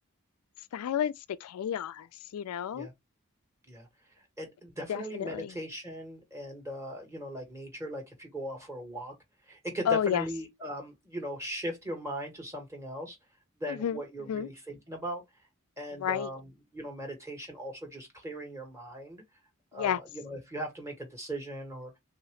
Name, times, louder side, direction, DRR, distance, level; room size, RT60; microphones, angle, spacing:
voice 1, 0.7-2.1 2.3-2.9 4.9-5.5 9.9-10.2 13.7-14.0 14.3-14.5 16.0-16.3 19.7-20.0, left 9 dB, 85° left, 0.3 m, -31 dB
voice 2, 4.4-9.1 9.5-13.2 13.6-15.2 15.8-19.2 19.7-21.9, equal, 15° right, 1.5 m, -39 dB
3.5 x 2.8 x 3.0 m
head